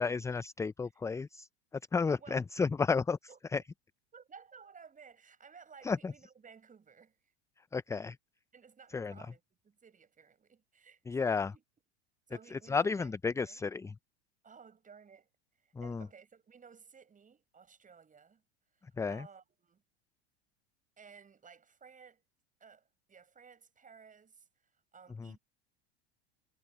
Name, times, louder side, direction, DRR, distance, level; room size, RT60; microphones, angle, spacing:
voice 1, 0.0-1.5 1.9-3.2 3.5-3.6 5.8-6.1 7.7-8.2 8.9-9.2 11.1-11.5 12.5-13.9 15.7-16.1 19.0-19.3 25.2-25.3, left 5 dB, 10° left, 0.5 m, -32 dB
voice 2, 4.1-7.2 8.5-11.6 12.3-13.6 14.4-15.3 15.6-18.4 18.7-18.8 19.1-19.8 21.0-22.2 22.6-25.4, right 6 dB, 25° right, 7.6 m, -56 dB
hypercardioid pair, 90°, 33 cm